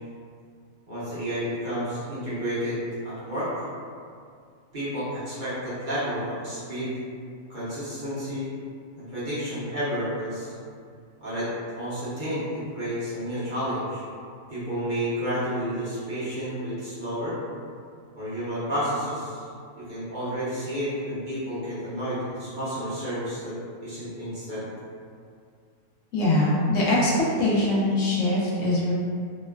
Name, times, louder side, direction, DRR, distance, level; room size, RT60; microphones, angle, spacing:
voice 1, 0.9-3.7 4.7-7.0 7.5-8.5 9.0-10.5 11.2-14.0 14.5-17.4 18.1-19.4 19.7-23.5 23.8-24.7, equal, 40° right, -12 dB, 0.7 m, -31 dB
voice 2, 26.1-28.9, left 1 dB, 65° left, -6 dB, 0.8 m, -22 dB
2.9 x 2.1 x 2.2 m, 2.2 s
omnidirectional pair, 1.6 m